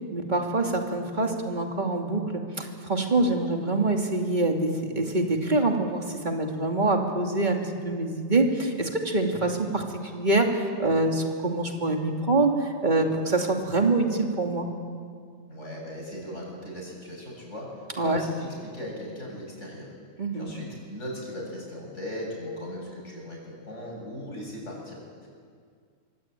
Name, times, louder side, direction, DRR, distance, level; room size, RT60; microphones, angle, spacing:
voice 1, 0.1-9.8 10.1-14.7 18.0-18.2 20.2-20.5, right 2 dB, 35° right, 2 dB, 2.9 m, -25 dB
voice 2, 15.5-19.9 20.3-25.3, left 1 dB, 65° left, -2 dB, 8.1 m, -38 dB
24.0 x 24.0 x 9.2 m, 2.1 s
omnidirectional pair, 1.4 m